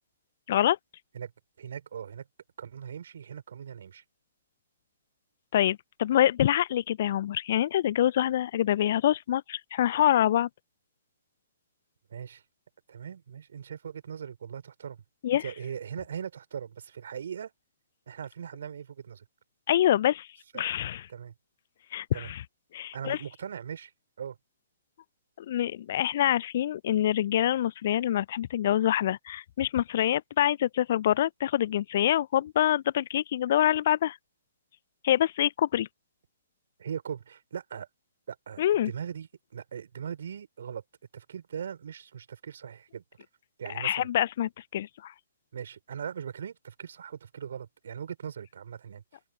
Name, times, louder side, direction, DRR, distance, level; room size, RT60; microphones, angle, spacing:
voice 1, 1.6-2.2 2.6-4.0 12.1-12.4 12.9-15.0 15.4-17.5 18.1-19.2 20.5-20.6 21.1-21.3 22.1-22.3 22.9-23.9 24.2-24.4 36.8-37.9 38.3-40.8 41.1-43.0 43.6-44.1 45.5-49.0, right 8 dB, 60° right, 5.1 m, -39 dB
voice 2, 5.5-10.5 15.2-15.4 19.7-20.3 20.5-21.1 21.9-22.4 22.7-23.2 25.4-34.2 35.0-35.9 38.6-38.9 43.7-45.1, left 11 dB, 50° left, 0.5 m, -26 dB
open air
figure-of-eight pair, 120°, 0 cm